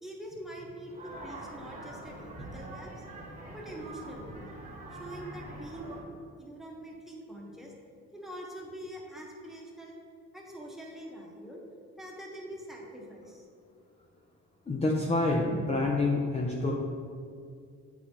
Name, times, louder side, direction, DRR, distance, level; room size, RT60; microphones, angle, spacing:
voice 1, 0.0-3.0 3.5-4.5 4.9-6.0 6.4-7.8 8.1-9.9 10.3-11.6 12.0-13.5, right 1 dB, ahead, -3 dB, 1.1 m, -44 dB
sound 1, 0.8-6.0, right 1 dB, 25° right, 1.2 m, -44 dB
voice 2, 14.7-16.7, left 2 dB, 20° left, -1 dB, 0.6 m, -27 dB
8.4 x 4.1 x 2.9 m, 2.2 s
cardioid pair, 90°, 30 cm